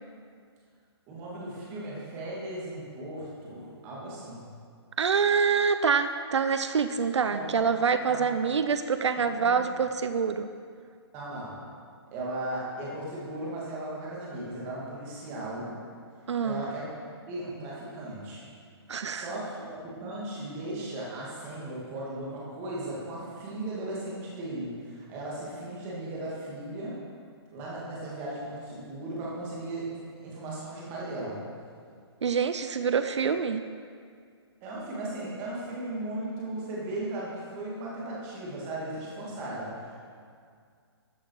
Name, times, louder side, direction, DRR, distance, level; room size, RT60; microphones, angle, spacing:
voice 1, 1.1-4.4 7.3-7.6 8.1-8.2 9.4-9.5 11.1-11.6 12.1-15.7 16.4-18.4 19.1-27.0 27.5-31.4 34.6-40.0, right 1 dB, 15° right, -6 dB, 2.4 m, -37 dB
voice 2, 5.0-10.5 16.3-16.7 18.9-19.3 32.2-33.6, right 6 dB, 85° right, 9 dB, 0.7 m, -26 dB
13.5 x 8.2 x 4.8 m, 2.2 s
hypercardioid pair, 170°, 14 cm